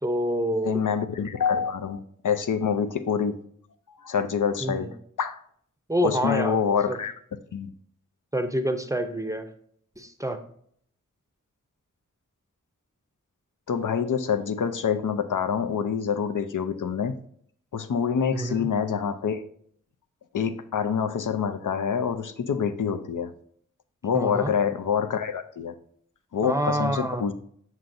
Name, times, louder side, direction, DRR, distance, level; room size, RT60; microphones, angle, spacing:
voice 1, 0.0-0.8 4.6-4.9 5.9-6.6 6.9-7.0 8.3-9.5 10.0-10.4 18.3-18.7 24.1-24.5 26.4-27.3, equal, 10° right, 8 dB, 0.6 m, -27 dB
voice 2, 0.6-3.4 3.9-5.4 6.0-7.1 7.5-7.7 13.7-17.2 17.7-19.4 20.3-23.3 24.0-25.7 26.3-27.3, left 7 dB, 75° left, 8 dB, 0.5 m, -26 dB
7.4 x 5.6 x 2.6 m, 0.63 s
wide cardioid pair, 60°, 31 cm